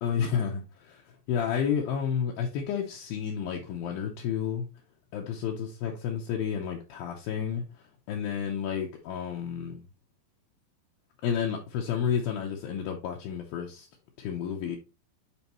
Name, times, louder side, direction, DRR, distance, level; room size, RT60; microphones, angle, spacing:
voice 1, 0.0-1.0 1.3-4.7 5.1-9.8 11.2-13.9 14.2-14.8, left 7 dB, 80° left, 2.1 m, -31 dB
8.8 x 4.1 x 3.0 m
omnidirectional pair, 5.1 m